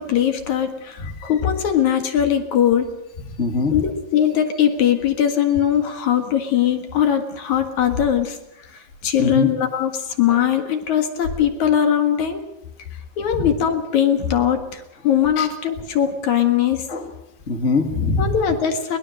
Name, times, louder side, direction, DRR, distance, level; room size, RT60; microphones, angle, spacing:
voice 1, 0.0-2.9 3.7-8.4 8.7-12.4 13.2-16.9 18.2-19.0, left 9 dB, 55° left, 6 dB, 2.7 m, -20 dB
voice 2, 3.4-3.8 9.2-9.5 10.3-10.4 13.3-13.5 15.4-15.5 16.9-17.1 17.5-18.4, left 3 dB, 35° left, 5 dB, 1.1 m, -22 dB
22.5 x 20.5 x 6.5 m, 0.88 s
omnidirectional pair, 4.5 m